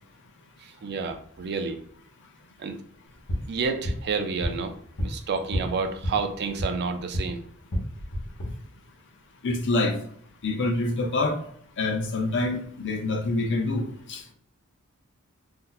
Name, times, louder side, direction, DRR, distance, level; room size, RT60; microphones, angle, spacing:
voice 1, 0.8-1.8 2.6-2.8 3.5-4.7 5.0-7.4, right 4 dB, 50° right, 7 dB, 0.4 m, -29 dB
sound 1, 3.1-7.3 7.6-8.5, equal, 75° left, 1.0 m, -32 dB
voice 2, 9.4-10.0 10.4-11.4 11.8-14.2, left 2 dB, 55° left, 4 dB, 0.6 m, -26 dB
2.7 x 2.1 x 3.9 m, 0.63 s
head